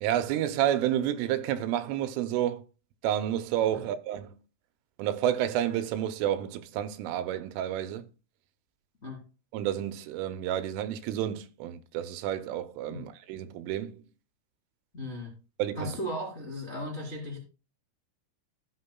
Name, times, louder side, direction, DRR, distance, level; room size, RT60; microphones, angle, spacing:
voice 1, 0.0-2.6 3.0-4.4 5.0-8.1 9.5-14.0 15.6-15.9, right 11 dB, 90° right, 3.2 m, -30 dB
voice 2, 14.9-15.3 15.7-17.4, equal, 50° left, 0.8 m, -36 dB
15.0 x 6.5 x 2.2 m
omnidirectional pair, 5.5 m